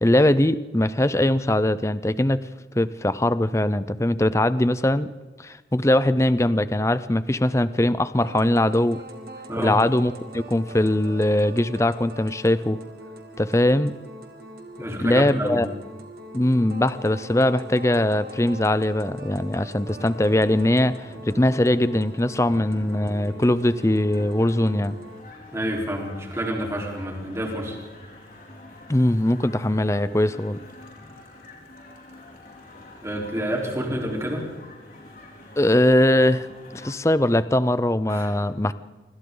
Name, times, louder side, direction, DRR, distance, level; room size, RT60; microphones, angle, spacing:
voice 1, 0.0-2.4 2.8-5.1 5.4-9.0 9.6-12.8 13.4-13.9 15.0-15.7 16.3-25.0 28.9-30.6 35.6-36.5 36.7-38.7, left 1 dB, 15° left, 14 dB, 0.6 m, -21 dB
sound 1, 8.2-25.2, right 1 dB, 55° right, 2.5 m, -42 dB
voice 2, 9.5-9.8 14.8-15.6 25.5-27.8 33.0-34.4 38.1-38.3, equal, 15° right, 0 dB, 4.1 m, -28 dB
sound 2, 19.9-37.0, left 1 dB, 50° left, 4.9 m, -46 dB
26.0 x 25.0 x 3.9 m, 1.2 s
head